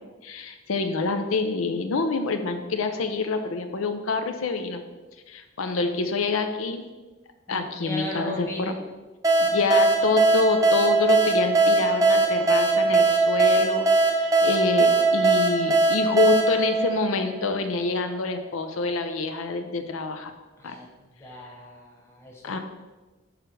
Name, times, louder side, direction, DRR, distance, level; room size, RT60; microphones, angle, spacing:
voice 1, 0.2-4.8 5.3-6.8 7.5-8.8 9.4-20.3 20.6-20.8 22.4-22.6, left 3 dB, 85° left, 7 dB, 0.6 m, -27 dB
voice 2, 7.5-8.6 20.6-20.9 21.2-22.6, left 1 dB, 10° left, -2 dB, 1.2 m, -37 dB
sound 1, 9.2-17.7, right 3 dB, 15° right, 0.7 m, -20 dB
4.9 x 4.7 x 6.2 m, 1.2 s
head